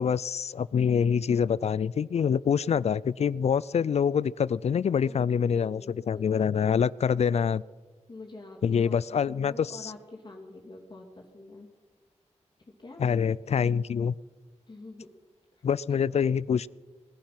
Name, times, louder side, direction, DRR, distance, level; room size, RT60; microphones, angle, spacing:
voice 1, 0.0-7.6 8.6-9.9 13.0-14.1 15.6-16.7, left 7 dB, 60° left, 22 dB, 0.4 m, -25 dB
voice 2, 5.0-6.4 8.1-11.7 12.8-13.0 14.7-15.1 15.6-16.0, left 2 dB, 40° left, -1 dB, 2.8 m, -46 dB
20.0 x 10.5 x 5.9 m, 1.4 s
wide cardioid pair, 80°, 12 cm